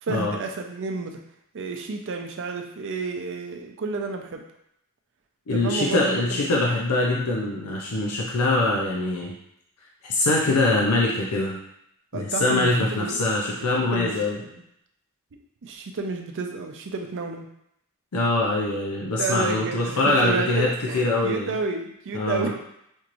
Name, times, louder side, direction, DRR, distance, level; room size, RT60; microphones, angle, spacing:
voice 1, 0.0-1.2 1.5-4.4 5.5-6.0 6.3-6.4 12.1-13.2 13.9-14.1 14.4-14.6 15.6-17.5 19.2-22.5, right 4 dB, 60° right, 4 dB, 0.5 m, -31 dB
voice 2, 5.5-9.3 10.0-11.6 12.1-14.4 18.1-21.5 22.1-22.5, left 2 dB, 85° left, -2 dB, 0.6 m, -23 dB
4.4 x 3.0 x 2.5 m, 0.76 s
head